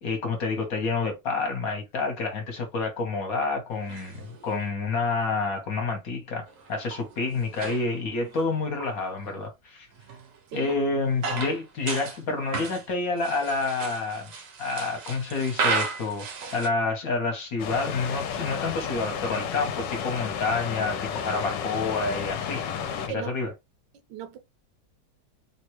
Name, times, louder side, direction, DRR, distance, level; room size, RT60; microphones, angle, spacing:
voice 1, 0.0-9.9 10.5-14.3 14.6-22.7 23.1-23.5, left 3 dB, 60° left, 1.2 m, -28 dB
sound 1, 3.8-4.7 5.6-5.7 6.5-9.0 9.3-9.4 9.9-12.2 12.5-16.7, right 4 dB, 65° right, 0.8 m, -34 dB
sound 2, 17.6-23.1, left 7 dB, 80° left, 1.2 m, -32 dB
voice 2, 23.0-23.3 24.1-24.4, right 10 dB, 85° right, 1.4 m, -37 dB
3.4 x 2.2 x 2.9 m
omnidirectional pair, 2.0 m